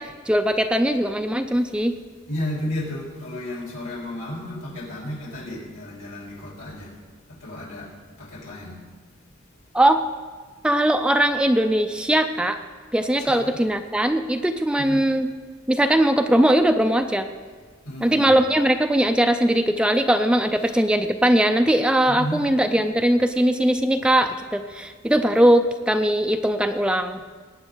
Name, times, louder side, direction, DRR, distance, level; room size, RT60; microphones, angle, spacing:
voice 1, 0.0-1.9 9.7-10.0 10.6-12.6 12.9-15.3 15.7-17.3 18.0-27.2, right 1 dB, 5° right, 6 dB, 0.4 m, -20 dB
voice 2, 2.3-6.9 7.3-7.9 8.2-8.8 13.2-13.5 14.8-15.0 17.8-18.3 20.6-20.8 22.1-22.4, left 1 dB, 85° left, -2 dB, 3.6 m, -33 dB
19.0 x 9.0 x 3.8 m, 1.5 s
head